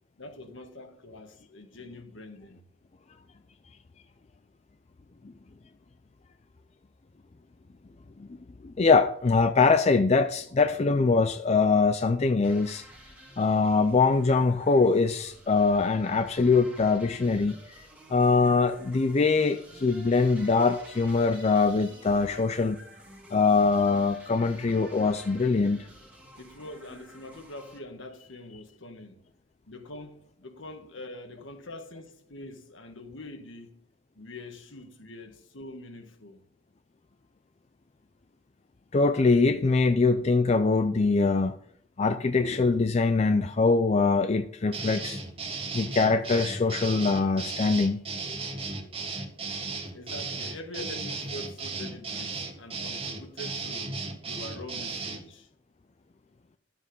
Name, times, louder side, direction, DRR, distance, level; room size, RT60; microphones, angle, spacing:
voice 1, 0.2-2.6 26.4-29.2 29.7-33.8 34.1-36.4 49.9-55.5, left 2 dB, 65° left, 1.6 m, -44 dB
voice 2, 8.6-12.8 13.4-22.8 23.3-25.8 38.9-41.5 42.0-45.2 45.7-48.0 48.3-48.4, left 4 dB, 30° left, 0.4 m, -23 dB
sound 1, 12.4-27.8, right 1 dB, 5° right, 1.9 m, -51 dB
sound 2, 44.7-55.2, right 4 dB, 25° right, 1.7 m, -35 dB
12.0 x 7.5 x 5.4 m
head